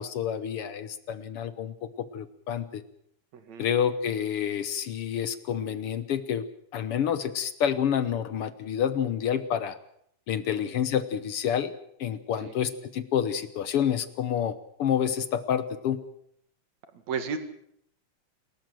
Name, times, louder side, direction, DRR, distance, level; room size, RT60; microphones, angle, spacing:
voice 1, 0.0-2.8 3.6-6.4 6.7-9.8 10.3-11.7 12.0-16.0, left 9 dB, 65° left, 13 dB, 1.5 m, -28 dB
voice 2, 3.3-3.7 10.5-10.7 12.4-12.5 17.1-17.4, right 6 dB, 60° right, 9 dB, 3.2 m, -34 dB
28.5 x 14.0 x 7.7 m, 0.71 s
omnidirectional pair, 3.7 m